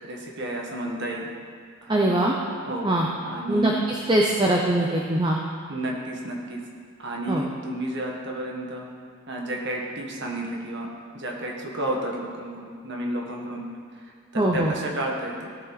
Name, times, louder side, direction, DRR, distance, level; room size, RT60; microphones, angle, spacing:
voice 1, 0.0-1.3 1.8-2.1 2.7-2.9 3.2-3.8 5.7-6.6 7.0-8.9 9.3-10.9 11.1-13.7 14.3-15.5, right 1 dB, 50° right, -1 dB, 1.7 m, -31 dB
voice 2, 1.9-2.3 2.8-3.1 3.5-3.7 4.1-5.4 7.3-7.4 14.4-14.7, right 1 dB, 20° right, -1 dB, 0.7 m, -21 dB
16.5 x 7.3 x 4.1 m, 2.1 s
head